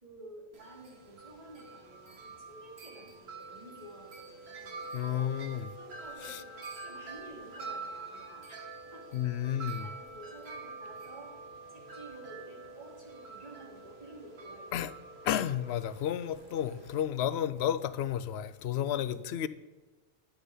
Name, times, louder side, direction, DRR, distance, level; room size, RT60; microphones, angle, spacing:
voice 1, 0.0-4.8 5.7-8.6 8.9-9.0 9.8-11.3 11.7-14.8 18.9-19.5, right 1 dB, 40° right, 3.3 m, -51 dB
Wind chime, 0.5-17.0, right 3 dB, 80° right, 1.4 m, -46 dB
voice 2, 4.9-5.8 6.2-6.4 9.1-9.9 14.7-14.9 15.2-19.5, left 10 dB, 85° left, 0.8 m, -32 dB
11.5 x 8.9 x 5.0 m
omnidirectional pair, 1.1 m